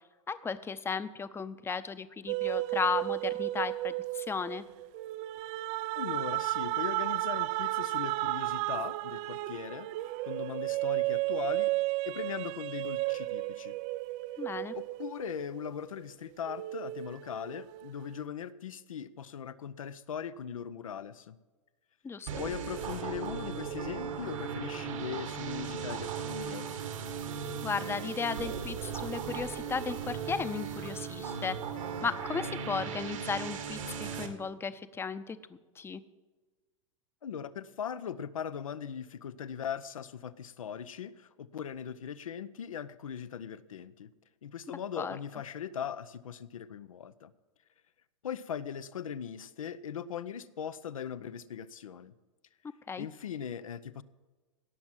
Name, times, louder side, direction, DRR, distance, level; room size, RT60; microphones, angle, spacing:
voice 1, 0.3-4.6 14.4-14.7 22.0-22.3 27.6-31.6 32.0-36.0 45.0-45.2 52.9-53.1, left 5 dB, 15° left, 13 dB, 0.7 m, -35 dB
sound 1, 2.3-16.0 16.5-18.1, right 19 dB, 45° right, 0.4 m, -33 dB
voice 2, 6.0-9.9 10.2-11.7 12.1-13.7 14.7-21.4 22.3-26.7 37.2-44.1 44.4-47.3 48.2-52.1 53.0-54.0, left 8 dB, 90° left, 14 dB, 0.7 m, -39 dB
sound 2, 22.3-34.3, right 6 dB, 75° right, 2.1 m, -37 dB
17.5 x 6.1 x 7.3 m, 1.3 s
hypercardioid pair, 110°, 17 cm